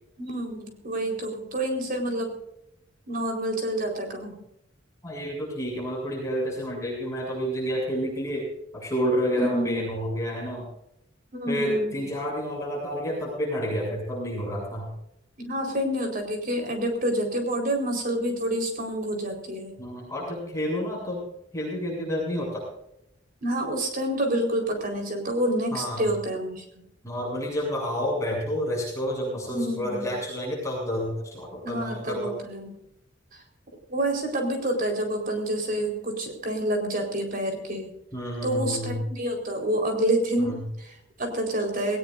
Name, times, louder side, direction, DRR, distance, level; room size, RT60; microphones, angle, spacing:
voice 1, 0.2-2.3 3.1-4.4 9.4-9.8 11.3-11.9 15.4-19.7 23.4-26.6 29.5-30.1 31.6-32.8 33.9-37.9 38.4-42.0, right 1 dB, 50° right, 3 dB, 4.4 m, -28 dB
voice 2, 5.0-8.5 8.7-10.7 11.5-14.9 19.8-21.2 21.5-22.7 25.7-26.0 27.0-32.4 38.1-39.0 40.4-40.6, equal, 15° left, -3 dB, 7.5 m, -29 dB
20.0 x 19.0 x 2.6 m, 0.79 s
head